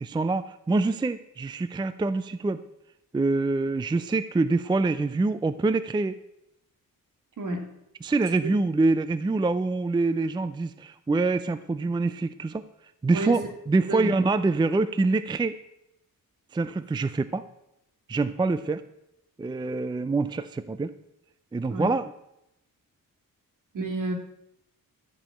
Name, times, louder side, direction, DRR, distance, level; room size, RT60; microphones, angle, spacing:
voice 1, 0.0-2.6 3.1-6.2 8.0-12.7 13.0-13.4 13.7-15.6 16.5-17.4 18.1-18.8 19.4-20.9 21.5-22.1, right 3 dB, 15° right, 13 dB, 0.4 m, -25 dB
voice 2, 7.4-7.7 8.4-8.5 13.1-13.5 13.9-14.1 21.7-21.9 23.7-24.1, right 2 dB, 65° right, 3 dB, 2.7 m, -30 dB
14.0 x 5.2 x 8.8 m, 0.84 s
cardioid pair, 115°, 34 cm